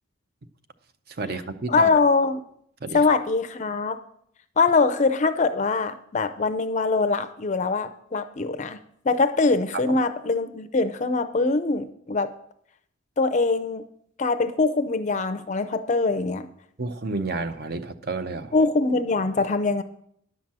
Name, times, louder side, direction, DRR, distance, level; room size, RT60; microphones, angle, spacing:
voice 1, 1.2-1.9 2.8-3.0 9.7-10.0 16.8-18.5, right 3 dB, 45° right, 10 dB, 0.6 m, -30 dB
voice 2, 1.7-2.4 2.9-4.0 4.6-8.8 9.0-12.3 13.2-13.8 14.2-16.5 18.5-19.8, left 3 dB, 35° left, 10 dB, 0.5 m, -23 dB
10.5 x 5.9 x 7.4 m, 0.69 s
head